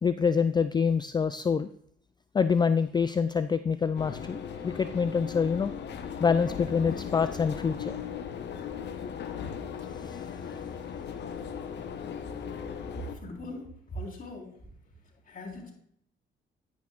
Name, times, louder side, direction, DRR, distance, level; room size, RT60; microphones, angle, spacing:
voice 1, 0.0-1.7 2.3-5.7 6.2-8.0 10.0-10.2, left 6 dB, 20° left, 12 dB, 0.3 m, -26 dB
sound 1, 3.9-13.1, left 7 dB, 60° left, 1.0 m, -37 dB
voice 2, 13.1-14.5 15.3-15.7, left 1 dB, 45° left, -2 dB, 3.9 m, -40 dB
11.0 x 9.4 x 2.4 m, 0.66 s
cardioid pair, 90°, 20 cm